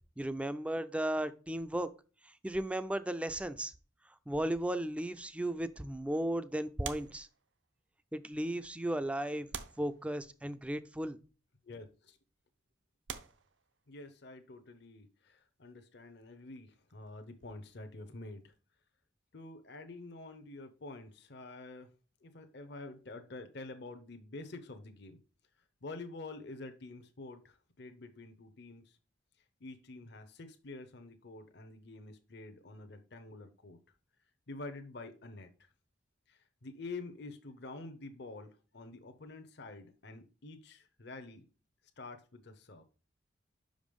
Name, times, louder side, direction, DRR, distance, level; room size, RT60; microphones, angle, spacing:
voice 1, 0.2-1.9 2.2-3.7 4.3-7.3 8.1-9.5 9.8-11.2, right 1 dB, 5° right, 0.4 m, -35 dB
sound 1, 6.8-7.9 8.7-8.8 9.5-10.6 11.6-11.8 12.4-12.5 13.1-14.3 16.2-18.0 18.2-18.4, right 7 dB, 70° right, 0.7 m, -47 dB
voice 2, 11.6-12.2 13.9-18.5 19.3-21.9 22.2-25.2 25.8-29.0 29.6-33.8 34.5-35.5 36.3-41.4 42.0-42.8, left 2 dB, 55° left, 0.8 m, -48 dB
5.8 x 5.1 x 5.2 m
head